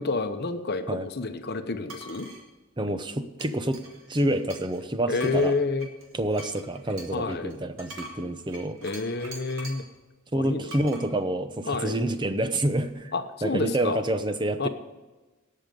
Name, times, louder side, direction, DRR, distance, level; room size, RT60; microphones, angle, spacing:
voice 1, 0.0-2.3 5.1-5.9 7.1-7.5 8.8-9.8 10.3-10.7 11.7-12.0 13.1-14.0 14.6-14.7, left 3 dB, 50° left, 9 dB, 0.9 m, -29 dB
sound 1, 1.9-2.4 3.4-4.8 5.2-9.9 10.7-11.1, right 2 dB, 70° right, 2.3 m, -44 dB
voice 2, 2.8-3.8 4.1-5.5 6.1-8.8 10.3-13.1 13.4-14.7, right 1 dB, 20° right, 10 dB, 0.7 m, -28 dB
18.0 x 6.6 x 5.2 m, 1.2 s
head